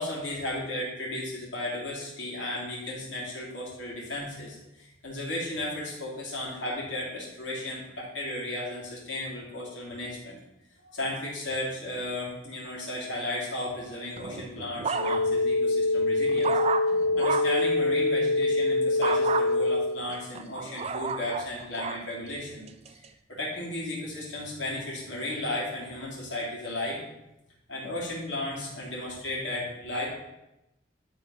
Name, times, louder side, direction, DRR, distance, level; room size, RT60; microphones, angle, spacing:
voice 1, 0.0-10.4 10.9-16.6 16.9-22.6 23.3-27.0 27.7-30.1, left 1 dB, 85° left, -6 dB, 2.8 m, -34 dB
sound 1, 14.2-15.5 16.0-17.6 19.0-19.5 20.1-22.0 22.7-23.1, right 5 dB, 35° right, 0.4 m, -32 dB
sound 2, 14.9-19.9, left 2 dB, 55° left, 0.9 m, -25 dB
10.5 x 3.8 x 5.6 m, 0.92 s
head